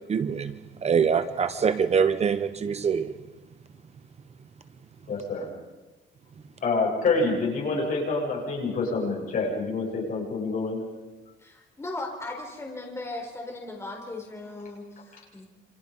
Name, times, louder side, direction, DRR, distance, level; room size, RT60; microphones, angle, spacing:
voice 1, 0.1-3.1, right 6 dB, 35° right, 11 dB, 0.9 m, -24 dB
voice 2, 5.1-5.5 6.6-10.8, left 3 dB, 45° left, -2 dB, 7.7 m, -27 dB
voice 3, 11.4-15.5, left 2 dB, 15° left, 0 dB, 4.0 m, -37 dB
28.5 x 26.5 x 5.5 m, 1.2 s
cardioid pair, 170°, 19 cm